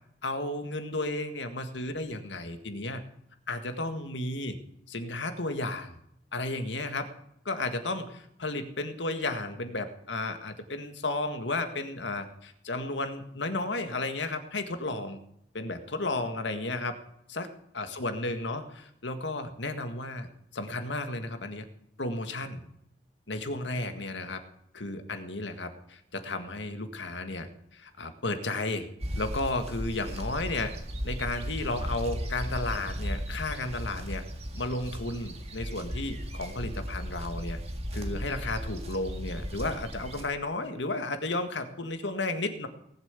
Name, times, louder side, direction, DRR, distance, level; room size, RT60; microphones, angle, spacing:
voice 1, 0.2-3.0 3.5-4.6 4.9-6.0 6.3-7.1 7.5-15.2 15.5-17.0 17.3-21.7 22.0-22.6 23.3-24.4 24.7-28.9 29.2-30.7 31.0-34.2 34.6-37.6 37.9-42.7, left 2 dB, 80° left, 8 dB, 1.8 m, -33 dB
sound 1, 29.0-40.3, equal, 35° right, 2.0 m, -36 dB
19.0 x 7.6 x 8.3 m, 0.74 s
head